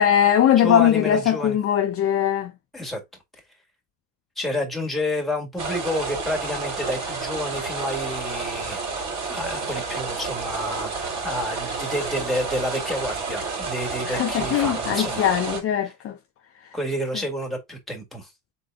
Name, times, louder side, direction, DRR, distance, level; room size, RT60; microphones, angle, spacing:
voice 1, 0.0-2.5 14.1-16.2, left 10 dB, 40° left, 0.6 m, -20 dB
voice 2, 0.6-1.6 2.7-3.0 4.4-8.9 9.3-15.3 16.7-18.3, left 1 dB, ahead, 1.9 m, -29 dB
sound 1, 5.6-15.6, right 4 dB, 45° right, 2.6 m, -30 dB
3.9 x 3.8 x 3.5 m
cardioid pair, 120°, 38 cm